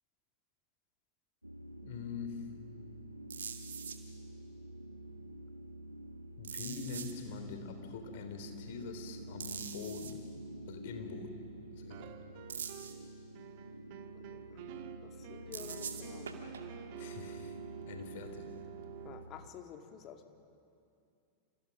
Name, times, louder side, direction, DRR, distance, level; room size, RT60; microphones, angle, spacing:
sound 1, 1.4-19.5, right 1 dB, 90° right, 1.2 m, -49 dB
voice 1, 1.8-2.5 6.4-10.3 10.7-11.5 11.8-12.1 17.0-17.6 17.9-18.5, left 5 dB, 55° left, 6 dB, 3.5 m, -44 dB
sound 2, 3.3-4.0 6.4-7.1 9.4-10.1 12.5-12.9 15.5-16.7 19.1-19.2, right 7 dB, 65° right, 2.1 m, -43 dB
sound 3, 11.9-13.1 13.3-19.2, right 12 dB, 50° right, 1.5 m, -49 dB
voice 2, 14.3-14.6 15.0-16.3 19.0-20.3, left 8 dB, 35° left, 5 dB, 2.4 m, -50 dB
29.0 x 27.5 x 6.1 m, 2.5 s
figure-of-eight pair, 90°, 0 cm